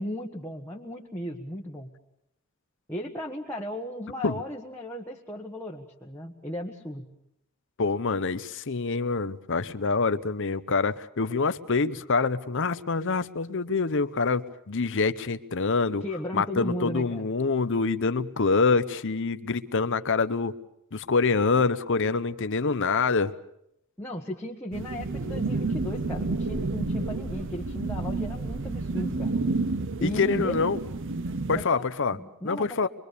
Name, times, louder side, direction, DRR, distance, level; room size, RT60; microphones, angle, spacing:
voice 1, 0.0-1.9 2.9-7.1 16.0-17.3 24.0-29.4 30.0-30.5 31.5-31.8 32.1-32.9, left 1 dB, 10° left, -2 dB, 1.5 m, -35 dB
voice 2, 7.8-16.0 16.3-20.5 20.9-23.3 30.0-30.8 31.5-32.2 32.4-32.9, left 4 dB, 60° left, 12 dB, 0.8 m, -26 dB
sound 1, 24.7-31.6, right 3 dB, 60° right, 0.8 m, -30 dB
25.0 x 23.0 x 6.8 m, 0.79 s
head